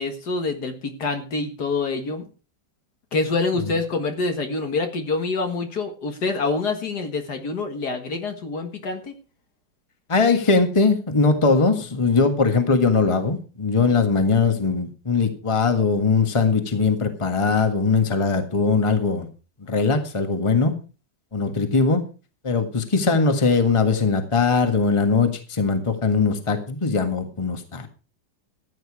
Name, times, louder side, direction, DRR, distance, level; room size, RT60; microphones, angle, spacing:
voice 1, 0.0-2.2 3.1-9.1, left 3 dB, 60° left, 6 dB, 2.2 m, -26 dB
voice 2, 10.1-19.3 19.7-20.7 21.3-22.0 22.4-27.9, left 4 dB, 15° left, 6 dB, 1.5 m, -20 dB
14.5 x 9.3 x 4.8 m, 0.35 s
omnidirectional pair, 2.0 m